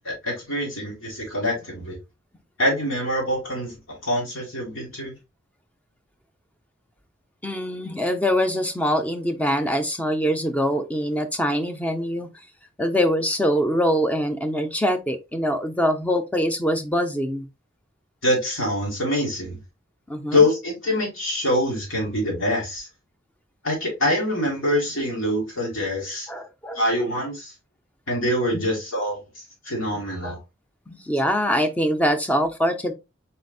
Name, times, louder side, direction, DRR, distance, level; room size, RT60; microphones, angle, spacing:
voice 1, 0.0-2.0 2.6-5.2 18.2-19.6 20.3-22.9 23.6-26.3 26.7-27.5 28.1-29.2 29.7-30.4, left 1 dB, 85° left, 2.3 m, -24 dB
voice 2, 7.4-12.3 12.8-17.4 20.1-20.5 26.3-26.8 28.5-28.8 30.2-30.4 30.9-32.9, equal, 10° left, 0.5 m, -24 dB
4.2 x 3.9 x 2.3 m
head